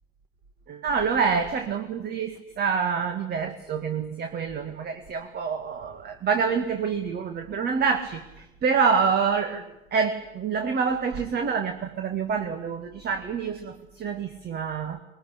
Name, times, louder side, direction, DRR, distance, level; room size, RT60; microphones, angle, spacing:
voice 1, 0.7-15.0, right 6 dB, 30° right, 7 dB, 2.0 m, -27 dB
22.5 x 21.5 x 10.0 m, 0.87 s
hypercardioid pair, 90°, 30 cm